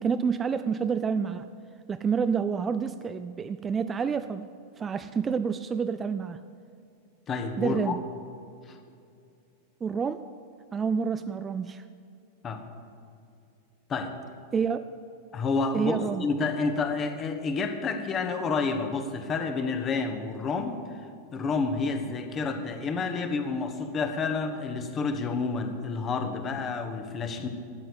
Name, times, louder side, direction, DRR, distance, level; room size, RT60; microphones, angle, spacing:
voice 1, 0.0-1.5 1.9-4.5 4.8-6.4 7.6-8.0 9.8-10.2 10.7-11.8 14.5-14.9 15.7-16.2, right 6 dB, 20° right, 11 dB, 0.4 m, -28 dB
voice 2, 7.3-8.0 8.7-8.8 12.4-12.6 13.9-14.1 15.3-21.0 21.3-27.5, left 4 dB, 25° left, 6 dB, 1.4 m, -29 dB
13.0 x 9.5 x 8.3 m, 2.5 s
figure-of-eight pair, 90°, 0 cm